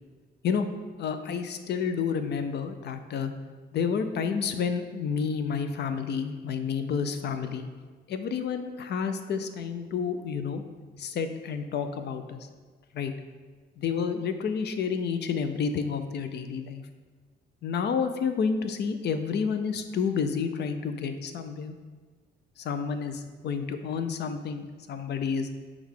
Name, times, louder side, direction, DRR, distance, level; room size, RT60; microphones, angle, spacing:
voice 1, 1.0-3.3 3.7-7.7 8.1-10.6 11.0-12.5 12.9-13.1 13.8-16.8 17.6-21.7 22.6-25.5, left 6 dB, 60° left, 8 dB, 0.5 m, -30 dB
6.2 x 2.4 x 3.6 m, 1.5 s
cardioid pair, 90°, 20 cm